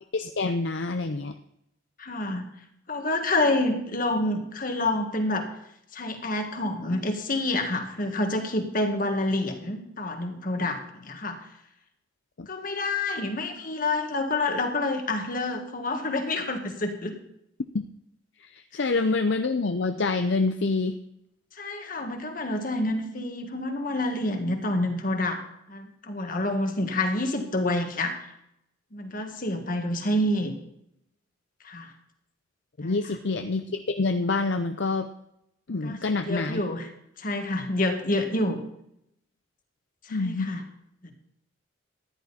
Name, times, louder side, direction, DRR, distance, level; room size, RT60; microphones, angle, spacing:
voice 1, 0.1-1.4 12.4-12.5 17.7-17.9 18.4-21.0 32.8-35.1 35.7-36.6 40.1-40.5, left 3 dB, 65° left, 7 dB, 0.6 m, -27 dB
voice 2, 2.0-2.5 2.9-5.5 5.9-11.4 12.5-17.1 18.7-18.8 21.6-25.4 25.7-28.3 28.9-30.5 31.6-31.9 32.8-33.2 35.8-36.9 37.2-38.6 40.0-40.6, left 2 dB, 45° left, 5 dB, 1.8 m, -28 dB
14.0 x 10.5 x 4.3 m, 0.77 s
head